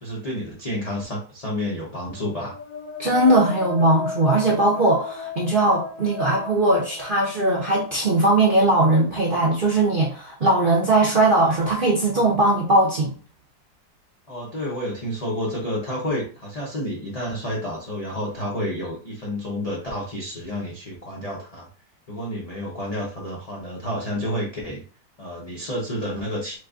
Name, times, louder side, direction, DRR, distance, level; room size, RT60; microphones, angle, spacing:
voice 1, 0.0-2.6 14.3-21.7 22.1-24.8 25.2-26.6, equal, 55° left, 0.4 m, -30 dB
sound 1, 2.0-7.8, left 3 dB, 70° left, 1.0 m, -35 dB
voice 2, 3.0-13.1, right 2 dB, 55° right, 0.6 m, -19 dB
3.1 x 2.3 x 3.6 m
omnidirectional pair, 1.8 m